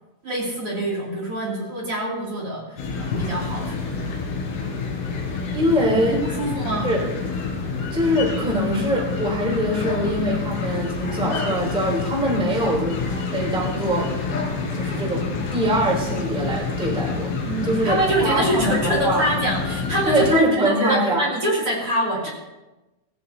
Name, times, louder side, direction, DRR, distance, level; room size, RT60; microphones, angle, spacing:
voice 1, 0.2-4.0 5.9-6.8 17.5-22.3, right 1 dB, 35° right, -3 dB, 2.8 m, -25 dB
sound 1, 2.8-20.3, left 4 dB, 85° left, 5.5 m, -28 dB
voice 2, 5.5-6.2 6.8-7.0 7.9-13.0 13.3-14.1 14.7-18.0 18.2-19.2 20.1-21.2, equal, ahead, -2 dB, 2.1 m, -23 dB
17.0 x 16.5 x 2.8 m, 1.0 s
omnidirectional pair, 5.7 m